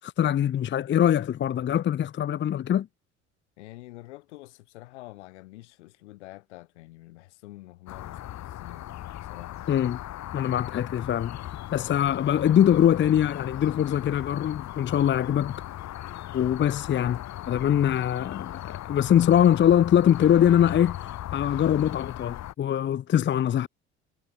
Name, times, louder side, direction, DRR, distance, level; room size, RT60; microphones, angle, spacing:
voice 1, 0.0-2.9 9.7-10.0 10.3-11.4 11.7-15.5 16.3-23.7, left 10 dB, 30° left, 0.8 m, -23 dB
voice 2, 3.6-8.9 9.2-9.6, left 19 dB, 75° left, 5.6 m, -47 dB
sound 1, 7.9-22.5, left 13 dB, 50° left, 2.7 m, -38 dB
hypercardioid pair, 60°, 35 cm